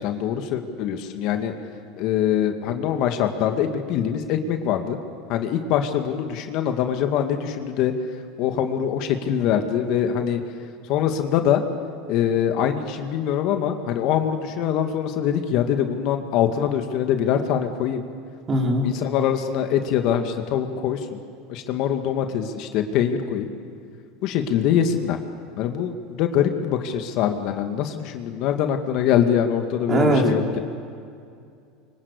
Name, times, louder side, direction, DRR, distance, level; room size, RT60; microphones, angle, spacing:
voice 1, 0.0-1.5 2.0-5.0 5.3-7.9 8.4-10.4 10.9-11.6 12.1-18.0 18.8-21.2 21.5-23.5 24.2-25.2 25.6-30.6, left 9 dB, 55° left, 6 dB, 2.0 m, -23 dB
voice 2, 18.5-18.9 29.9-30.2, right 1 dB, 30° right, 1 dB, 4.2 m, -20 dB
25.0 x 23.5 x 8.2 m, 2.4 s
supercardioid pair, 120°, 0 cm